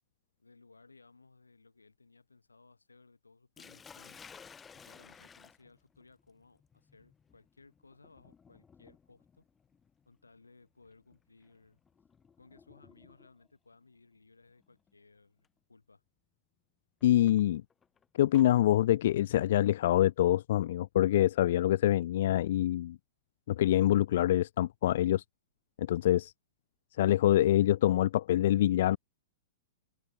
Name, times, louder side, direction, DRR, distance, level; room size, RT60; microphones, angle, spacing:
voice 1, 0.4-4.2 4.7-9.5 10.1-11.8 12.4-16.0, left 3 dB, 80° left, 4.9 m, -61 dB
Sink (filling or washing), 3.6-13.5 14.6-14.9 15.4-15.5 17.0-18.5, left 6 dB, 15° left, 5.3 m, -57 dB
voice 2, 17.0-17.6 18.1-23.0 23.5-25.2 25.8-26.3 27.0-29.0, left 13 dB, 55° left, 0.3 m, -25 dB
figure-of-eight pair, 105°, 0 cm